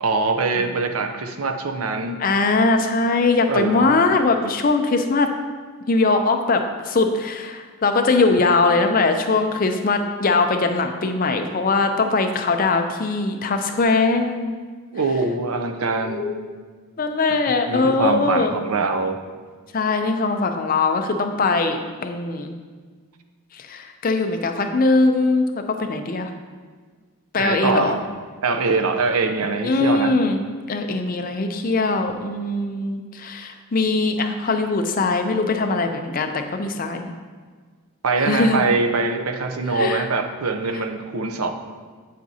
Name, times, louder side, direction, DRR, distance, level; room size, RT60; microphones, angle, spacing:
voice 1, 0.0-2.2 3.5-4.0 14.9-16.2 17.7-19.2 27.4-28.0 28.4-30.1 38.0-41.5, right 3 dB, 75° right, 7 dB, 0.6 m, -23 dB
voice 2, 2.2-5.3 5.9-14.5 16.0-16.5 17.0-18.5 19.7-22.5 23.5-26.3 27.3-28.0 29.6-30.4 30.7-37.1 38.2-38.7 39.7-40.0, left 3 dB, 40° left, 6 dB, 0.5 m, -21 dB
7.9 x 7.4 x 2.8 m, 1.5 s
head